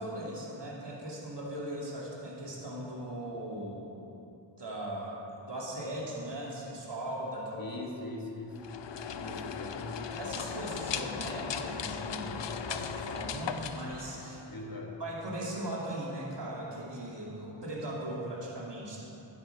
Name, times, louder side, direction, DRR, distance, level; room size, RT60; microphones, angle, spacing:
voice 1, 0.0-4.0 4.6-7.6 9.1-9.5 10.2-12.4 12.7-14.4 15.0-19.0, right 1 dB, 65° right, -5 dB, 2.7 m, -39 dB
voice 2, 7.6-8.6 9.2-10.1 12.2-12.5 14.5-15.0, left 2 dB, 50° left, -1 dB, 1.9 m, -41 dB
sound 1, 8.5-14.7, left 7 dB, 70° left, 0.6 m, -38 dB
12.5 x 9.4 x 4.8 m, 2.9 s
wide cardioid pair, 50°, 45 cm